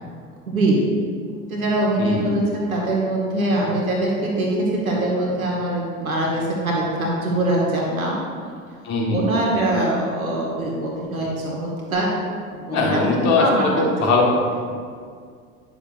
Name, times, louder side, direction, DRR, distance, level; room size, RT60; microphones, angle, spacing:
voice 1, 0.5-0.8 1.5-8.2 9.1-12.1 12.5-13.7 14.0-14.1, right 1 dB, 80° right, -3 dB, 1.8 m, -23 dB
voice 2, 2.0-2.4 8.8-9.4 12.7-14.3 14.6-14.7, left 3 dB, 40° left, -2 dB, 1.7 m, -20 dB
9.7 x 6.9 x 2.6 m, 2.1 s
figure-of-eight pair, 75°, 42 cm